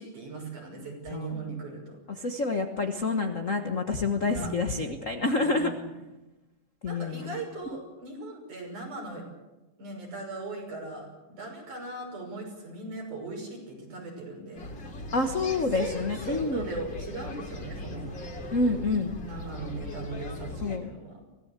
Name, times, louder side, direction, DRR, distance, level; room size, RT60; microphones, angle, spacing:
voice 1, 0.0-2.0 4.2-4.5 5.4-5.9 6.9-9.2 9.8-14.7 15.5-18.1 19.2-21.2, right 3 dB, 70° right, 1 dB, 7.4 m, -39 dB
voice 2, 2.1-5.7 6.8-7.4 15.1-16.6 18.5-19.2 20.6-20.9, left 3 dB, 70° left, 6 dB, 0.7 m, -28 dB
sound 1, 14.6-20.8, left 2 dB, 40° left, 3.1 m, -39 dB
24.0 x 17.5 x 8.1 m, 1.1 s
omnidirectional pair, 3.6 m